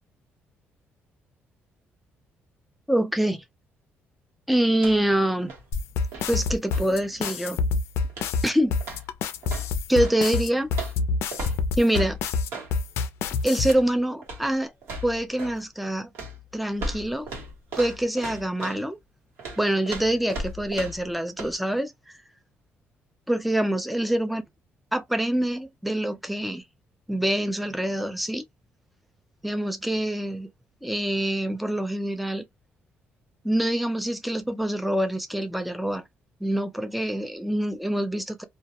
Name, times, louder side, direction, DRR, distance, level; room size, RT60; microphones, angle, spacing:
voice 1, 2.9-3.4 4.5-5.5 6.3-7.6 8.4-8.8 9.9-10.7 11.8-12.2 13.4-14.7 15.0-16.1 16.5-17.3 17.8-19.0 19.6-22.2 23.3-24.4 24.9-26.6 27.1-28.4 29.4-30.5 30.8-32.4 33.4-36.0 36.4-38.4, right 1 dB, ahead, 0.3 m, -25 dB
sound 1, 4.7-5.2 5.4-7.5 8.1-8.5 8.8-10.2 10.7-12.7 13.6-13.9 14.2-14.5 14.8-15.6 16.1-18.8 19.4-21.1 21.4-21.5, right 1 dB, 75° right, 1.0 m, -37 dB
sound 2, 5.7-13.7, left 4 dB, 85° left, 0.4 m, -26 dB
2.2 x 2.0 x 2.8 m
cardioid pair, 155°, 4 cm